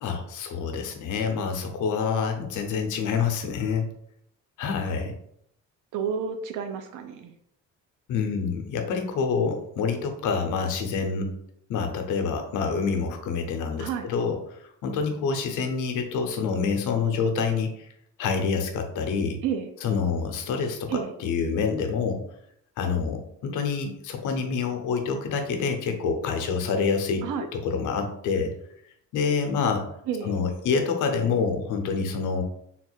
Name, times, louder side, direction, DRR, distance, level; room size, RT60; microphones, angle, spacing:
voice 1, 0.0-3.9 4.6-5.2 8.1-11.3 11.7-17.9 18.2-19.4 19.8-22.2 22.8-28.5 29.1-29.9 30.2-32.4, left 5 dB, 80° left, 5 dB, 0.8 m, -27 dB
voice 2, 5.9-7.4 13.8-14.1 19.4-19.7 20.9-21.1 27.2-27.5 30.1-30.4, right 7 dB, 90° right, 7 dB, 0.5 m, -30 dB
3.7 x 2.4 x 4.5 m, 0.72 s
cardioid pair, 170°, 30 cm